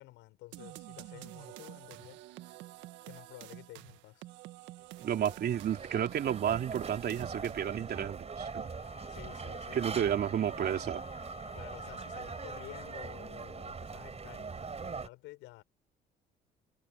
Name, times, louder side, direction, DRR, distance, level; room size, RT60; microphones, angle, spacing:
voice 1, 0.0-2.2 3.0-4.3 9.1-10.1 11.5-15.6, left 19 dB, 80° left, 7.1 m, -51 dB
sound 1, 0.5-7.9, right 17 dB, 80° right, 1.7 m, -49 dB
sound 2, 4.8-15.1, right 5 dB, 35° right, 4.7 m, -42 dB
voice 2, 5.0-8.7 9.7-11.0, right 9 dB, 60° right, 3.2 m, -32 dB
Wind instrument woodwind instrument, 8.4-13.1, left 7 dB, 35° left, 2.3 m, -52 dB
supercardioid pair, 65°, 19 cm